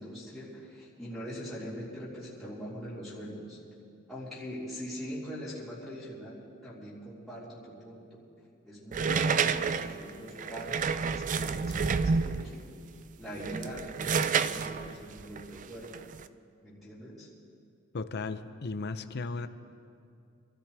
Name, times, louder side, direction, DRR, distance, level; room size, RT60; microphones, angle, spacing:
voice 1, 0.0-3.6 4.1-8.2 8.6-12.7 13.2-15.9 16.6-17.3, equal, ahead, -12 dB, 3.9 m, -42 dB
sound 1, 8.9-12.6 13.3-16.2, right 5 dB, 40° right, 0.4 m, -29 dB
voice 2, 17.9-19.5, left 3 dB, 55° left, 10 dB, 0.6 m, -35 dB
26.5 x 13.5 x 3.4 m, 2.5 s
head